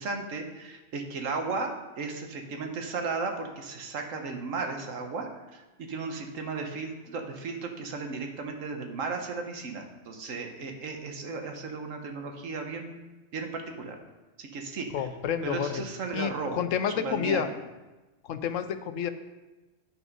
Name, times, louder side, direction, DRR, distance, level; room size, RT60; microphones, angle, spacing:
voice 1, 0.0-13.0 13.3-14.0 14.4-15.1 15.4-17.4, right 4 dB, 85° right, 4 dB, 1.4 m, -35 dB
voice 2, 14.9-15.8 16.1-17.5 18.2-19.1, left 8 dB, 80° left, 10 dB, 1.0 m, -29 dB
9.1 x 6.1 x 5.3 m, 1.1 s
omnidirectional pair, 1.3 m